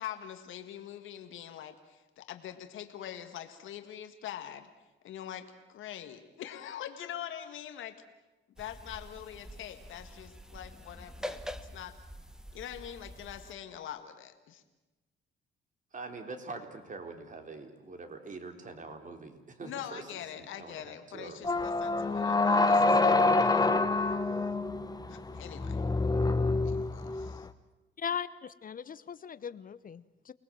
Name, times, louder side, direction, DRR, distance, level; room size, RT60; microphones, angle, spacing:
voice 1, 0.0-4.7 5.0-8.0 8.6-12.0 12.5-14.6 19.6-23.7 25.1-25.8 26.6-27.5, left 10 dB, 80° left, 7 dB, 2.0 m, -44 dB
sound 1, 8.6-13.5, equal, 5° right, 1.4 m, -45 dB
voice 2, 15.9-21.6, right 3 dB, 40° right, 6 dB, 3.8 m, -44 dB
sound 2, 21.4-27.4, left 3 dB, 20° left, 1.2 m, -27 dB
voice 3, 28.0-30.3, left 7 dB, 45° left, 16 dB, 0.8 m, -38 dB
29.0 x 20.0 x 7.6 m, 1.1 s
cardioid pair, 90°, 20 cm